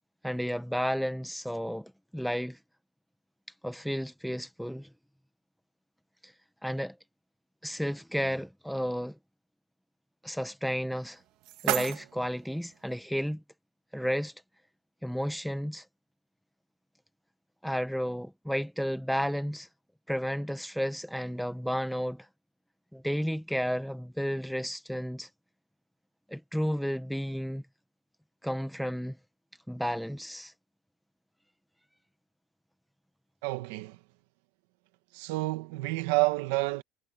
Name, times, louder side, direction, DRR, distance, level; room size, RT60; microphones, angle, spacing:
voice 1, 0.2-2.6 3.6-4.9 6.6-6.9 7.6-9.2 10.2-11.2 11.6-13.4 13.9-14.3 15.0-15.8 17.6-19.7 20.1-22.3 22.9-25.3 26.3-27.6 28.4-29.2 29.7-30.5, equal, ahead, 0.9 m, -32 dB
sound 1, 10.9-12.9, right 16 dB, 50° right, 1.6 m, -35 dB
voice 2, 33.4-34.0 35.1-36.8, right 22 dB, 80° right, 1.5 m, -29 dB
cardioid pair, 175°, 0 cm